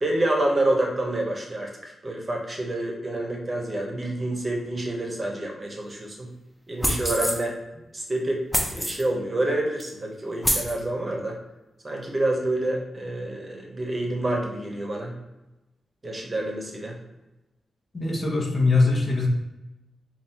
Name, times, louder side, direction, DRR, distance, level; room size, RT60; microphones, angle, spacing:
voice 1, 0.0-6.3 6.7-7.6 7.9-8.4 8.7-11.4 11.8-15.2 16.0-17.0, right 1 dB, 30° right, 0 dB, 0.9 m, -28 dB
sound 1, 6.8-7.4 8.5-9.0 9.8-9.9 10.4-10.7, equal, 5° left, 0.7 m, -25 dB
voice 2, 17.9-19.3, left 3 dB, 45° left, 0 dB, 0.9 m, -22 dB
5.2 x 2.4 x 2.8 m, 1.0 s
cardioid pair, 70°, 0 cm